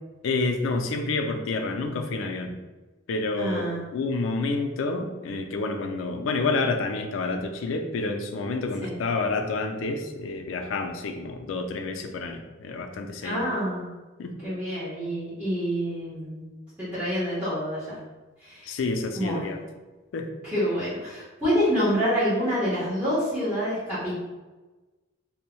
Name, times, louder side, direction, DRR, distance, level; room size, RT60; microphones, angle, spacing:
voice 1, 0.2-2.6 3.1-3.6 3.9-13.4 14.2-14.3 18.6-19.6 20.1-20.3, left 3 dB, 75° left, 5 dB, 0.4 m, -29 dB
voice 2, 3.3-3.8 8.8-8.9 13.2-13.9 14.4-16.4 16.8-18.0 18.4-18.8 19.1-19.5 20.4-24.2, equal, 10° right, -12 dB, 0.9 m, -27 dB
2.6 x 2.1 x 3.0 m, 1.2 s
head